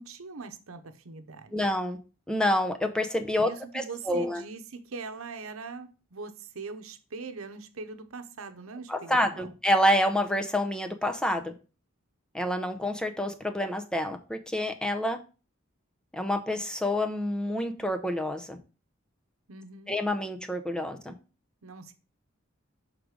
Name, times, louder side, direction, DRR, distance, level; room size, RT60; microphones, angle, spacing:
voice 1, 0.0-1.7 3.4-9.5 19.5-20.0 21.6-21.9, right 4 dB, 85° right, 0.8 m, -42 dB
voice 2, 1.5-2.0 2.3-4.4 8.9-11.5 12.3-15.2 16.1-18.6 19.9-21.1, left 1 dB, 5° left, 0.6 m, -28 dB
6.6 x 3.7 x 4.8 m
head